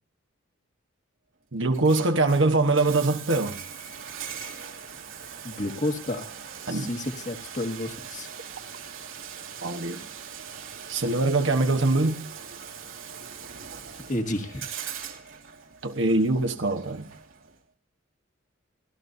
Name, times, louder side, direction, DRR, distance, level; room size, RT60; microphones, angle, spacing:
voice 1, 1.5-3.6 6.7-6.9 9.6-10.1 10.9-12.2 15.8-17.1, right 2 dB, 65° right, 1.2 m, -23 dB
Bathtub (filling or washing), 1.6-17.6, right 7 dB, 85° right, 2.6 m, -41 dB
voice 2, 5.4-6.3 6.7-8.3 14.1-14.7, left 1 dB, 40° left, 1.9 m, -31 dB
29.5 x 13.0 x 2.7 m
head